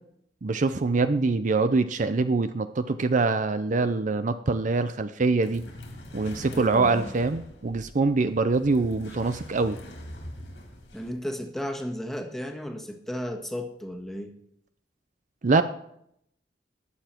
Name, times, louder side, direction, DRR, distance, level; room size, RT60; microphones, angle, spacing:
voice 1, 0.4-5.6 6.1-9.8 15.4-15.6, right 3 dB, 45° right, 11 dB, 0.5 m, -24 dB
sound 1, 5.4-11.1, left 1 dB, 85° left, 3.5 m, -43 dB
voice 2, 6.5-7.1 10.9-14.3, equal, ahead, 3 dB, 1.5 m, -34 dB
19.5 x 6.9 x 4.4 m, 0.72 s
head